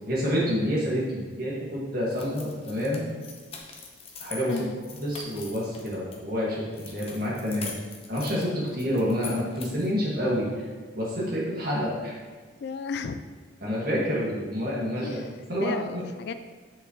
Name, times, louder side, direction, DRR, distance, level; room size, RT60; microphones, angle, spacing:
voice 1, 0.1-3.1 4.2-4.5 5.0-7.7 8.1-10.7 10.9-12.1 13.6-15.2 15.5-16.0, equal, 50° right, -6 dB, 2.0 m, -28 dB
sound 1, 2.1-6.2 6.7-9.9, left 5 dB, 30° left, 0.7 m, -43 dB
voice 2, 4.5-4.8 12.6-13.2 15.0-15.3 15.6-16.3, left 5 dB, 55° left, 10 dB, 0.3 m, -34 dB
6.5 x 5.7 x 3.1 m, 1.5 s
head